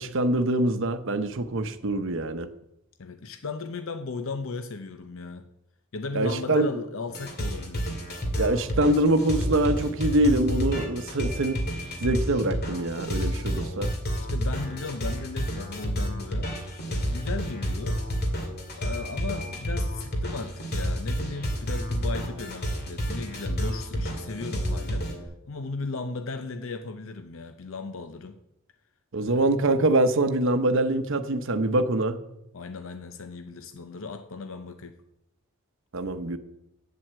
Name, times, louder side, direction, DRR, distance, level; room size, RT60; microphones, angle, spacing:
voice 1, 0.0-2.5 6.1-6.7 8.4-11.6 12.0-13.9 29.1-32.2 35.9-36.4, right 1 dB, 65° right, 9 dB, 0.8 m, -24 dB
voice 2, 3.0-5.4 5.9-7.9 14.2-16.5 16.9-18.0 18.8-28.4 29.3-29.5 32.5-34.9, left 3 dB, 65° left, 8 dB, 0.7 m, -36 dB
sound 1, 7.1-25.2, equal, 50° left, 2.2 m, -30 dB
8.5 x 7.7 x 7.6 m, 0.85 s
head